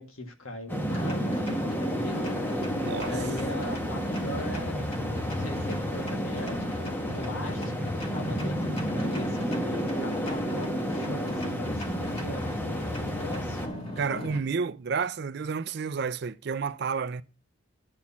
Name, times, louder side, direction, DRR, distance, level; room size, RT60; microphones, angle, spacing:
voice 1, 0.0-2.3 2.9-4.8 5.2-13.6, left 1 dB, 90° left, 1.7 m, -40 dB
sound 1, 0.7-13.7, equal, 10° left, 1.2 m, -31 dB
sound 2, 0.9-14.4, left 1 dB, 30° left, 2.5 m, -38 dB
voice 2, 2.8-3.2 14.0-17.2, right 5 dB, 55° right, 0.4 m, -30 dB
11.0 x 4.2 x 7.0 m
head